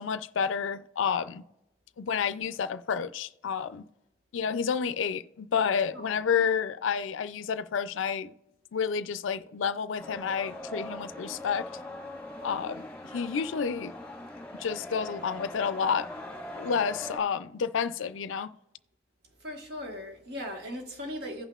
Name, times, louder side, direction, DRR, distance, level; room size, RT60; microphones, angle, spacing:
voice 1, 0.0-1.4 2.0-3.8 4.3-8.3 8.7-11.7 12.4-12.9 13.1-13.9 14.5-16.1 16.6-18.5, left 6 dB, 85° left, 0.4 m, -30 dB
sound 1, 10.0-17.2, left 1 dB, 5° left, 1.6 m, -41 dB
voice 2, 19.4-21.4, left 1 dB, 55° right, 1.4 m, -38 dB
16.0 x 5.5 x 2.4 m
head